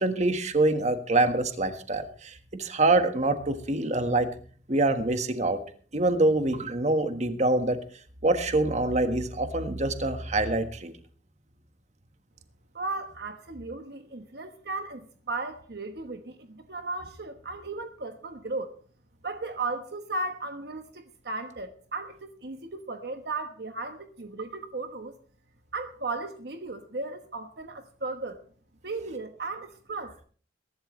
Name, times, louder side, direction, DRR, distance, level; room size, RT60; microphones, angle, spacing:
voice 1, 0.0-4.3 4.7-5.6 5.9-7.8 8.2-10.9, right 2 dB, 40° right, 1.5 m, -25 dB
voice 2, 12.7-18.7 19.2-25.1 25.7-28.4 28.8-30.2, right 3 dB, 60° right, 1.2 m, -36 dB
22.5 x 12.0 x 3.2 m
head